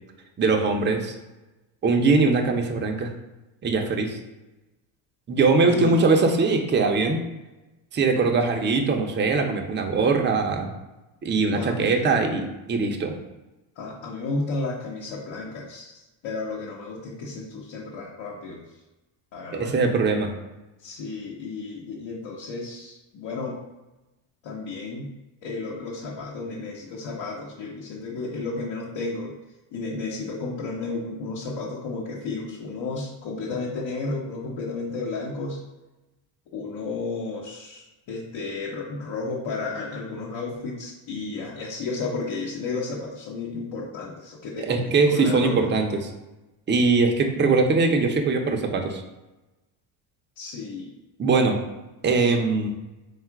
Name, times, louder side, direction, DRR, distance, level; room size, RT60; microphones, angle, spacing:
voice 1, 0.4-1.1 1.8-3.1 3.6-4.2 5.3-7.2 7.9-10.7 11.2-13.1 19.5-20.3 44.6-46.1 46.7-49.0 51.2-51.6 52.0-52.7, right 4 dB, 25° right, 3 dB, 0.5 m, -21 dB
voice 2, 5.6-6.0 8.2-8.5 11.5-12.0 13.8-15.9 16.2-18.6 19.3-19.7 20.8-23.6 24.4-25.1 25.4-29.3 29.7-35.6 36.5-45.7 50.4-50.9, left 3 dB, 60° left, -4 dB, 0.9 m, -33 dB
3.6 x 2.4 x 4.5 m, 1.0 s
cardioid pair, 95°, 50 cm